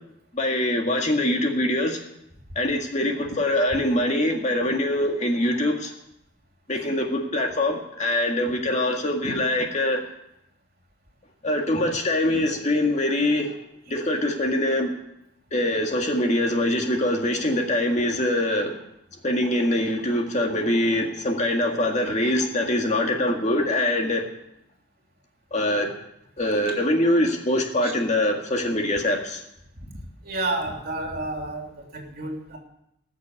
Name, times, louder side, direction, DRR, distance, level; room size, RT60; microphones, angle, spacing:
voice 1, 0.3-2.0 2.6-5.9 6.7-10.0 11.4-13.5 13.9-14.9 15.5-18.8 19.2-24.2 25.5-25.9 26.4-29.4, left 1 dB, 40° left, 2 dB, 1.9 m, -23 dB
voice 2, 30.2-32.6, right 2 dB, 55° right, 1 dB, 3.1 m, -30 dB
19.0 x 6.6 x 8.3 m, 0.79 s
head